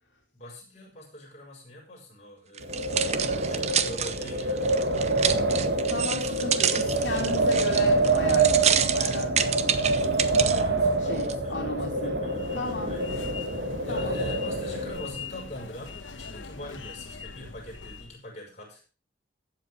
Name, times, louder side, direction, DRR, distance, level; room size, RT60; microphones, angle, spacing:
voice 1, 0.3-3.2 3.4-4.8 6.0-7.2 10.5-18.8, left 1 dB, 35° left, -2 dB, 5.7 m, -44 dB
sound 1, 2.6-10.6 11.2-11.3, right 8 dB, 35° right, 0.7 m, -28 dB
Wind, 2.6-15.2, right 2 dB, 60° right, 1.5 m, -26 dB
voice 2, 5.9-10.0 11.1-13.0 13.9-14.2, left 2 dB, 70° left, -1 dB, 2.9 m, -35 dB
sound 2, 12.3-18.2, left 5 dB, 85° left, 1.2 m, -42 dB
15.0 x 7.7 x 4.7 m, 0.36 s
head